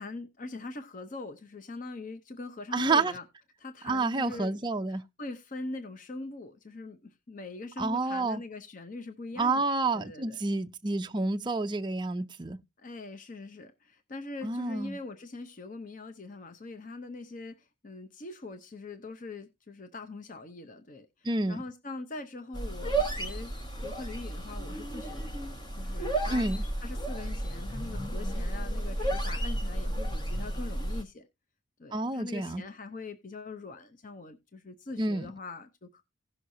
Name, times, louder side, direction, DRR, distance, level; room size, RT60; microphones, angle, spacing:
voice 1, 0.0-3.2 3.6-4.6 4.9-9.7 9.9-10.4 12.8-23.5 23.8-31.3 31.8-36.0, left 3 dB, 40° left, 0.6 m, -42 dB
voice 2, 2.7-3.1 3.8-5.0 7.8-8.4 9.4-12.6 14.4-15.0 21.2-21.6 26.3-26.6 31.9-32.6 35.0-35.3, right 3 dB, 20° right, 0.4 m, -29 dB
sound 1, 22.5-31.0, right 1 dB, 20° left, 1.0 m, -33 dB
16.5 x 6.3 x 2.6 m
head